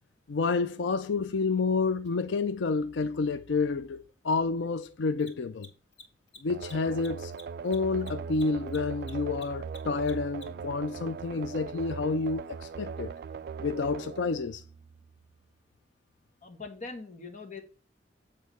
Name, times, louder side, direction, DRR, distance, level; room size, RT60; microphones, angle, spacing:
voice 1, 0.3-5.7 6.4-7.3 7.6-13.1 13.6-14.6, left 4 dB, 85° left, 0.5 m, -29 dB
Mechanisms, 2.0-2.1 5.1-10.7, left 3 dB, 70° left, 2.3 m, -51 dB
sound 1, 6.5-15.2, right 5 dB, 60° right, 0.3 m, -40 dB
voice 2, 16.4-17.6, left 4 dB, 45° left, 1.6 m, -42 dB
8.4 x 3.8 x 6.8 m
head